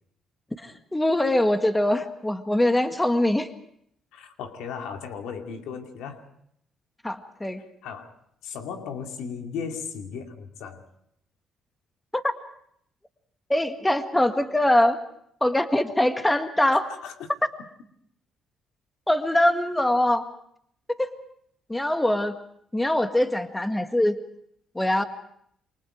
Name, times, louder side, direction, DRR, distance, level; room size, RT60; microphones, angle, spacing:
voice 1, 0.6-3.5 7.0-7.6 12.1-12.3 13.5-15.0 15.4-16.9 19.1-20.3 20.9-21.1 21.7-22.3 22.7-24.2 24.8-25.0, left 1 dB, 10° left, 7 dB, 1.8 m, -23 dB
voice 2, 4.1-6.2 7.8-8.1 8.4-10.8 17.0-17.1, left 6 dB, 90° left, 4 dB, 2.5 m, -36 dB
28.0 x 24.5 x 5.0 m, 0.70 s
cardioid pair, 90°, 0 cm